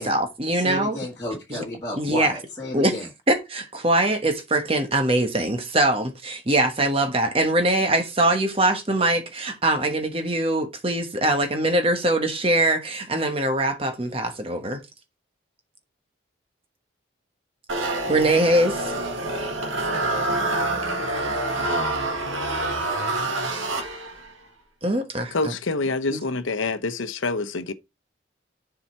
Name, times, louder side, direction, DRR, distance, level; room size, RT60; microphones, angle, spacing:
voice 1, 0.0-1.0 1.5-1.6 2.0-2.3 2.7-2.9 3.3-14.8 18.1-18.9 24.8-25.5 26.1-26.2, right 1 dB, 30° right, 1.2 m, -22 dB
voice 2, 0.5-3.1, left 1 dB, 15° left, 1.9 m, -32 dB
sound 1, 17.7-24.3, right 2 dB, 85° right, 1.8 m, -26 dB
voice 3, 25.3-27.7, left 3 dB, 85° left, 0.8 m, -26 dB
7.2 x 4.9 x 4.4 m
head